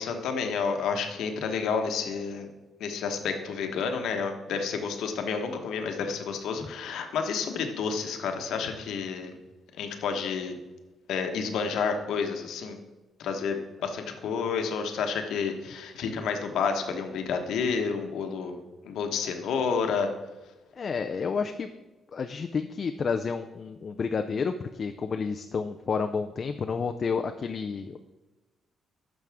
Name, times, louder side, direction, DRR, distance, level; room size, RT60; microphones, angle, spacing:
voice 1, 0.0-2.5 2.8-9.4 9.8-10.6 11.1-12.8 13.2-18.6 18.8-20.1, left 5 dB, 85° left, 5 dB, 1.2 m, -30 dB
voice 2, 20.8-21.7 22.1-28.0, left 5 dB, 45° left, 7 dB, 0.5 m, -30 dB
10.5 x 6.4 x 3.5 m, 1.2 s
cardioid pair, 115°, 0 cm